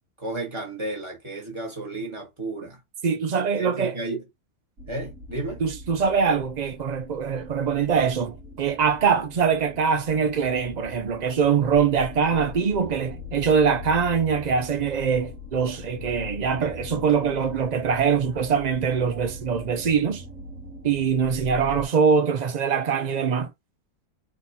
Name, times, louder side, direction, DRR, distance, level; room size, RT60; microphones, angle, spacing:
voice 1, 0.2-2.8 3.5-4.2 4.9-5.6, right 2 dB, 20° right, 1.6 m, -32 dB
voice 2, 3.0-4.0 5.6-20.2 20.8-23.5, right 6 dB, 75° right, 0.3 m, -23 dB
sound 1, 4.8-21.8, left 3 dB, 55° right, 1.7 m, -41 dB
4.1 x 3.8 x 2.7 m
omnidirectional pair, 1.5 m